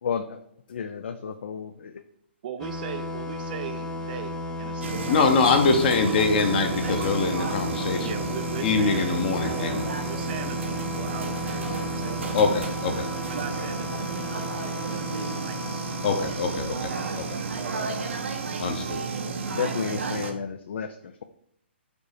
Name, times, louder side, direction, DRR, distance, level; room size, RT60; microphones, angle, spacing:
voice 1, 0.0-0.4 0.7-2.0 19.4-21.2, left 7 dB, 70° left, 8 dB, 0.4 m, -32 dB
voice 2, 2.4-5.6 8.0-12.4 13.3-15.8 16.2-16.4 16.9-18.1, right 9 dB, 50° right, 8 dB, 0.4 m, -40 dB
sound 1, 2.6-18.0, left 1 dB, 10° left, 0.6 m, -34 dB
sound 2, 4.8-20.3, right 4 dB, 85° right, 1.0 m, -32 dB
voice 3, 5.1-8.2 8.6-9.9 11.7-11.9 12.3-13.1 16.0-17.4 18.6-19.0, left 4 dB, 50° left, 5 dB, 0.9 m, -24 dB
5.3 x 4.0 x 4.8 m, 0.70 s
hypercardioid pair, 150°, 6 cm